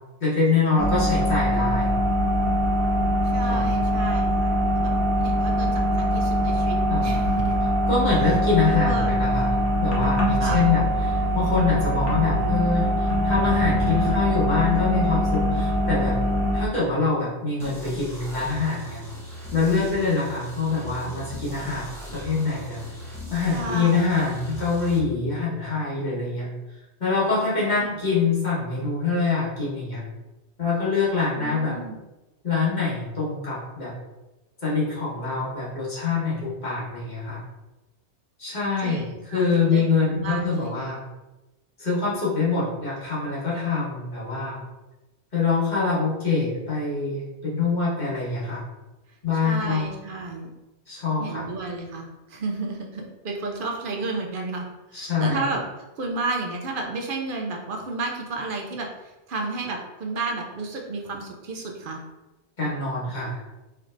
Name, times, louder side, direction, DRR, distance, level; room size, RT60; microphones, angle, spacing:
voice 1, 0.2-1.9 3.4-3.7 6.9-7.1 7.9-16.2 16.5-19.0 19.5-22.8 23.3-26.5 27.0-30.0 30.6-31.8 32.4-33.9 34.6-37.4 38.4-41.0 41.8-44.6 45.3-48.6 49.2-49.8 50.9-51.4 54.9-55.5 62.6-63.4, left 4 dB, 40° left, -8 dB, 1.5 m, -25 dB
sound 1, 0.8-16.7, equal, 70° left, 1.2 m, -23 dB
voice 2, 3.3-4.9 5.2-6.8 7.0-7.5 8.7-9.2 10.4-10.7 23.5-24.1 27.6-27.8 31.3-31.9 38.8-39.8 40.1-40.7 49.4-50.5 51.2-54.6 54.9-55.6 56.0-58.9 59.3-62.0, right 3 dB, 55° right, 0 dB, 0.7 m, -32 dB
sound 2, 17.6-25.0, right 1 dB, 5° left, 1.0 m, -39 dB
4.4 x 3.2 x 2.5 m, 1.1 s
omnidirectional pair, 1.1 m